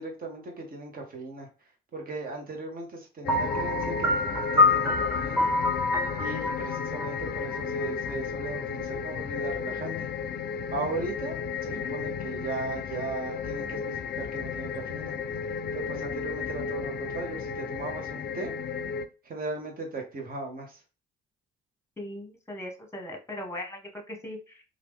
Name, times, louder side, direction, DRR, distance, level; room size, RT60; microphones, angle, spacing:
voice 1, 0.0-1.5 1.9-5.5 6.2-10.1 10.7-15.2 15.7-18.5 19.2-20.8, right 3 dB, 45° right, 2 dB, 1.3 m, -37 dB
sound 1, 3.2-19.1, left 7 dB, 55° left, 0.4 m, -33 dB
Piano, 3.3-8.1, left 2 dB, 10° right, 1.2 m, -26 dB
voice 2, 22.0-24.6, left 1 dB, 15° left, 3 dB, 1.1 m, -39 dB
3.0 x 2.5 x 3.5 m, 0.33 s
cardioid pair, 90°, 20 cm